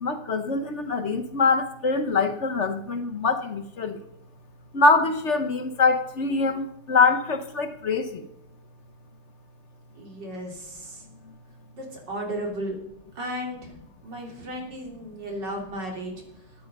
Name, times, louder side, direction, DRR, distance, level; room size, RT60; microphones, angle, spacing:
voice 1, 0.0-4.0 4.7-8.2, left 4 dB, 50° left, 1.0 m, -24 dB
voice 2, 10.0-11.1 11.7-12.8 13.2-13.7 14.0-16.1, right 1 dB, 65° right, 3.6 m, -34 dB
14.5 x 10.0 x 5.4 m
omnidirectional pair, 2.0 m